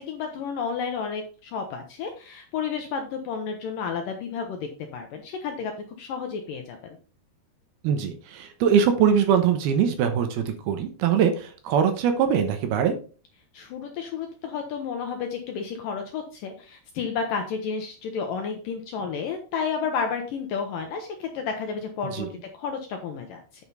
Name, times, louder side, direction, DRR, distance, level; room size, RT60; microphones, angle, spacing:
voice 1, 0.0-5.7 6.0-7.0 13.5-22.3 22.5-23.4, left 6 dB, 70° left, 4 dB, 2.1 m, -31 dB
voice 2, 7.8-13.0 22.1-22.3, right 7 dB, 75° right, 6 dB, 2.8 m, -22 dB
9.4 x 5.5 x 4.0 m, 0.37 s
omnidirectional pair, 4.9 m